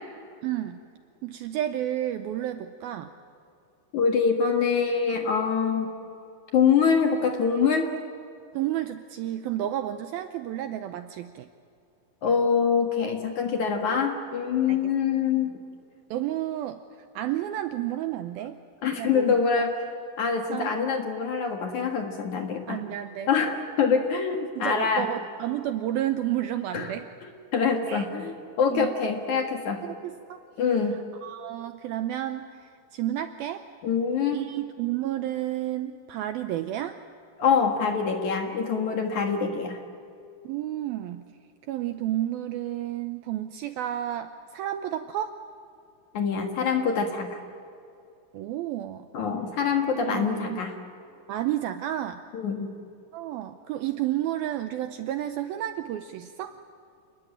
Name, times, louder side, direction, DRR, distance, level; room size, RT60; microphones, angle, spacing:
voice 1, 0.4-0.8 1.2-3.1 8.5-11.5 14.7-14.8 16.1-16.8 17.2-18.6 18.9-19.4 20.5-20.8 22.7-23.3 24.6-27.1 27.9-28.1 28.7-28.9 29.8-30.4 31.2-33.6 34.3-37.0 40.4-41.2 41.7-45.4 48.3-49.1 50.0-50.6 51.3-52.2 53.1-56.5, right 12 dB, 80° right, 9 dB, 2.2 m, -31 dB
voice 2, 3.9-5.9 6.5-7.9 12.2-15.6 18.8-19.8 20.2-22.8 23.3-25.1 26.7-26.9 27.5-29.8 30.6-31.0 33.8-34.4 37.4-39.8 46.1-47.4 49.1-50.7 52.3-52.7, left 6 dB, 55° left, 4 dB, 2.4 m, -25 dB
28.5 x 20.5 x 9.0 m, 2.6 s
omnidirectional pair, 5.0 m